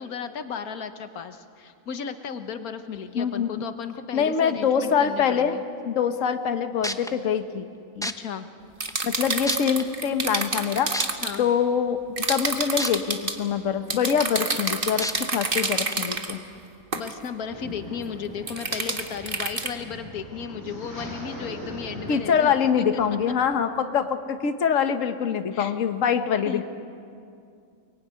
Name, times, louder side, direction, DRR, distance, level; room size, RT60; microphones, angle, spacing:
voice 1, 0.0-5.6 8.0-8.5 11.2-11.5 16.9-22.9 25.5-25.7 26.4-26.6, left 7 dB, 90° left, 9 dB, 1.6 m, -35 dB
voice 2, 3.1-3.5 4.1-5.5 5.8-7.7 7.9-8.1 9.0-12.0 12.3-16.4 22.1-26.6, left 7 dB, 65° left, 8 dB, 1.5 m, -24 dB
sound 1, 6.5-6.6 6.8-7.1 8.0-8.1 8.9-9.0 9.5-9.8 10.9-11.0 12.8-12.9 13.4-13.5 15.0-15.1 15.9-16.0, equal, 5° left, 0.6 m, -29 dB
sound 2, 8.8-11.4 12.2-13.4 13.9-16.3 16.9-17.1 18.5-19.7, right 3 dB, 40° right, 1.8 m, -28 dB
Small waves on shingle beach, 17.5-23.3, equal, 15° right, 6.2 m, -40 dB
24.0 x 22.5 x 9.6 m, 2.4 s
omnidirectional pair, 1.5 m